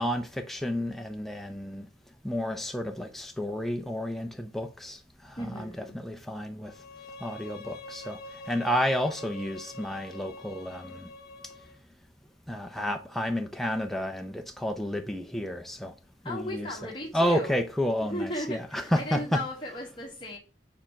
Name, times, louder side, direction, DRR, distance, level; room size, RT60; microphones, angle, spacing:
voice 1, 0.0-1.9 2.2-5.0 5.4-6.7 7.2-8.2 8.5-11.1 12.5-15.9 16.3-19.4, equal, ahead, 0.5 m, -31 dB
voice 2, 5.4-5.9 16.2-17.5 18.1-20.4, left 1 dB, 25° left, 1.5 m, -36 dB
Bowed string instrument, 6.6-11.8, left 2 dB, 50° left, 1.4 m, -45 dB
7.5 x 4.3 x 5.7 m
head